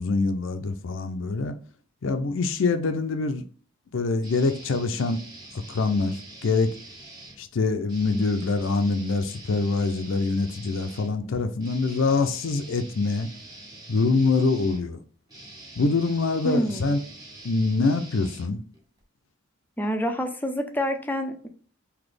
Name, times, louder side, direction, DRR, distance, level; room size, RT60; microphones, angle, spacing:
voice 1, 0.0-1.5 2.0-3.4 3.9-5.2 5.7-6.7 7.4-13.3 13.9-15.0 15.8-17.0 17.4-18.6, left 3 dB, 70° left, 0.5 m, -24 dB
sound 1, 4.2-7.4 7.9-19.0, right 2 dB, 20° right, 1.0 m, -45 dB
voice 2, 16.4-17.0 19.8-21.5, equal, 10° left, 0.5 m, -27 dB
4.0 x 2.8 x 3.2 m
head